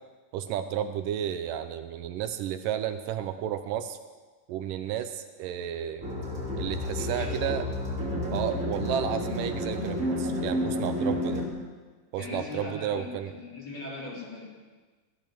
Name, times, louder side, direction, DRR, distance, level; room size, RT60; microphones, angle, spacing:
voice 1, 0.3-4.0 4.5-6.1 6.5-7.7 8.3-11.4 12.1-13.3, right 10 dB, 80° right, 9 dB, 2.3 m, -32 dB
sound 1, 6.0-11.5, left 1 dB, 25° right, 2.9 m, -30 dB
voice 2, 7.0-7.5 12.2-14.5, left 3 dB, 30° left, -6 dB, 4.6 m, -39 dB
16.5 x 13.0 x 6.1 m, 1.4 s
omnidirectional pair, 3.8 m